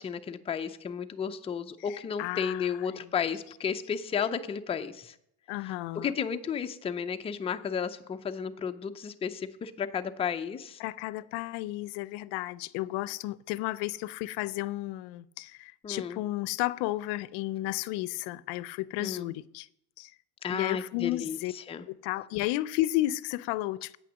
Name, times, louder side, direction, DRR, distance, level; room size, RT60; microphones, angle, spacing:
voice 1, 0.0-5.1 5.9-10.8 15.8-16.2 19.0-19.3 20.4-21.8, left 7 dB, 15° left, 0.4 m, -33 dB
voice 2, 1.9-3.0 5.5-6.1 10.8-19.7 20.0-20.1 20.5-21.5 21.9-24.0, left 17 dB, 75° left, 0.5 m, -33 dB
8.6 x 5.7 x 7.3 m
cardioid pair, 120°, 41 cm